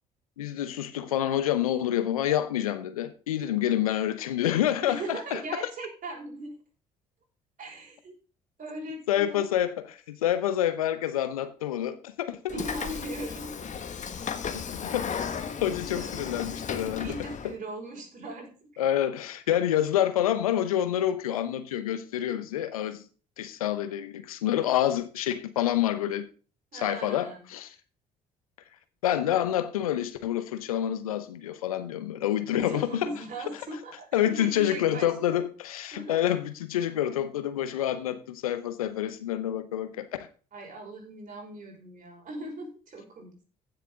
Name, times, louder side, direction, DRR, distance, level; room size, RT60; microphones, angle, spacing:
voice 1, 0.4-5.4 9.1-12.5 14.5-15.1 15.6-17.1 18.8-23.0 23.4-26.3 26.7-27.7 29.0-33.1 34.1-40.3, left 11 dB, 85° left, 0.8 m, -28 dB
voice 2, 4.8-6.5 7.6-8.2 8.6-9.4 12.5-13.7 14.8-15.0 15.9-16.2 17.0-18.5 26.7-27.4 32.5-35.4 35.9-36.2 40.5-43.4, right 2 dB, 45° right, 5.4 m, -39 dB
Train / Sliding door, 12.5-17.5, left 6 dB, 45° left, 1.4 m, -35 dB
15.0 x 6.7 x 3.7 m
hypercardioid pair, 50°, 18 cm